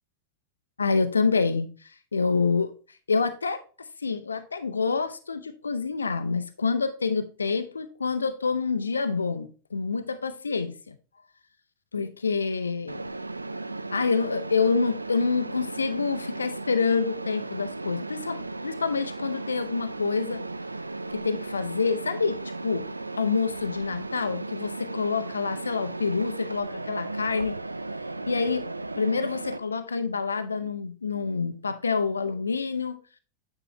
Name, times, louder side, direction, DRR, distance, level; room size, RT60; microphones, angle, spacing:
voice 1, 0.8-2.7 3.1-11.0 11.9-13.1 13.9-20.4 21.1-22.9 23.2-27.6 28.3-28.7 29.0-33.0, left 4 dB, 75° left, 0.6 m, -27 dB
Mechanisms, 12.9-29.6, right 2 dB, 80° right, 0.3 m, -36 dB
9.3 x 4.8 x 3.2 m
figure-of-eight pair, 90°, 0 cm